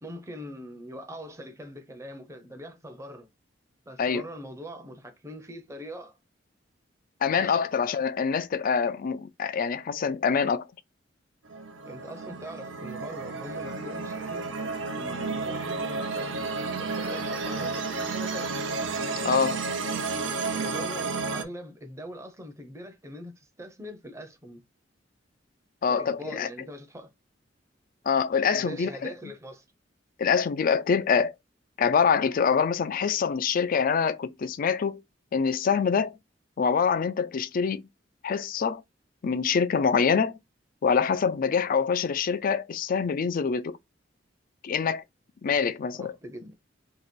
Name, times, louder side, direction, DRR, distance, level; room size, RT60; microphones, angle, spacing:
voice 1, 0.0-3.3 3.9-6.2 7.4-7.6 11.8-16.3 16.8-18.5 20.5-24.6 25.9-27.1 28.5-29.6 45.4-46.5, equal, 15° right, 0.7 m, -42 dB
voice 2, 7.2-10.7 19.2-19.6 25.8-26.5 28.1-29.1 30.2-31.3 31.8-35.0 35.3-36.2 36.6-37.8 38.2-38.8 39.2-40.4 40.8-43.8 44.6-45.0 45.4-46.1, left 6 dB, 50° left, 0.4 m, -25 dB
sound 1, 11.4-21.4, right 4 dB, 90° right, 0.7 m, -32 dB
2.9 x 2.9 x 4.4 m
head